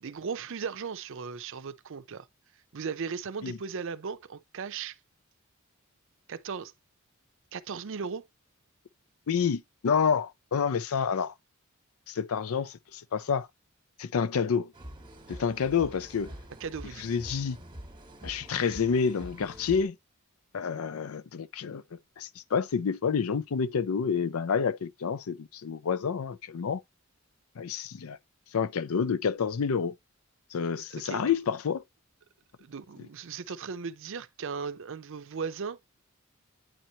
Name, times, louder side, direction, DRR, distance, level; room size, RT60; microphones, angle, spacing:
voice 1, 0.0-2.3 2.7-5.0 6.3-6.7 7.5-8.3 16.6-17.1 30.9-31.3 32.6-35.8, right 5 dB, 65° right, 0.5 m, -37 dB
voice 2, 9.3-11.3 12.1-13.5 14.0-14.7 15.3-16.3 17.0-17.6 18.2-20.0 20.5-21.8 22.2-26.8 27.6-28.2 28.5-29.9 30.5-31.8, left 6 dB, 80° left, 0.5 m, -28 dB
sound 1, 14.7-19.8, right 1 dB, 20° right, 1.2 m, -46 dB
9.0 x 4.4 x 2.7 m
head